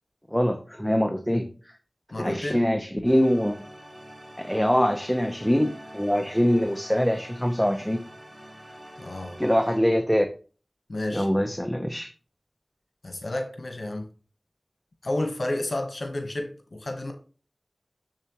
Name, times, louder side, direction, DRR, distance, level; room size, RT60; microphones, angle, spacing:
voice 1, 0.3-1.5 2.2-3.6 4.4-8.0 9.4-10.3 11.1-12.1, equal, 5° left, 0.9 m, -23 dB
voice 2, 2.1-2.6 9.0-9.4 10.9-11.3 13.0-14.1 15.0-17.1, left 1 dB, 80° left, 1.2 m, -31 dB
sound 1, 3.0-9.8, equal, 55° right, 4.1 m, -46 dB
7.4 x 6.9 x 3.0 m
wide cardioid pair, 40°, 0 cm